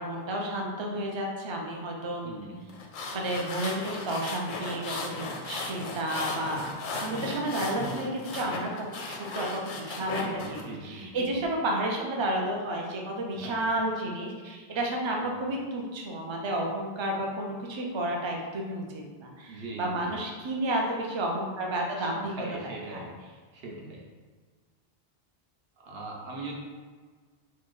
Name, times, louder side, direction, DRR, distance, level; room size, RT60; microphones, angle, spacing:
voice 1, 0.0-2.4 3.1-22.3 22.6-23.0, right 1 dB, 45° right, 0 dB, 0.4 m, -31 dB
voice 2, 2.2-2.6 10.0-11.5 13.3-13.6 15.2-15.4 19.5-20.2 22.0-23.1 23.5-24.0 25.8-26.5, right 2 dB, 65° right, -2 dB, 0.9 m, -41 dB
sound 1, 2.7-10.6, left 3 dB, 60° left, 0.6 m, -36 dB
4.3 x 2.1 x 3.1 m, 1.5 s
omnidirectional pair, 1.2 m